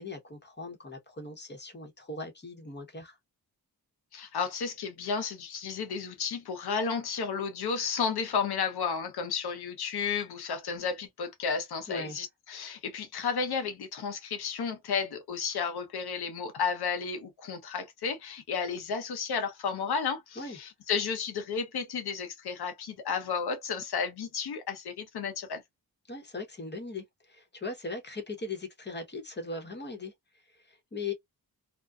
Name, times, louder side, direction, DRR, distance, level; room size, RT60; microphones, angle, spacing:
voice 1, 0.0-3.2 11.9-12.2 20.4-20.6 26.1-31.1, left 3 dB, 30° left, 1.0 m, -39 dB
voice 2, 4.1-25.6, left 6 dB, 80° left, 0.8 m, -32 dB
2.5 x 2.2 x 2.3 m
cardioid pair, 80°, 38 cm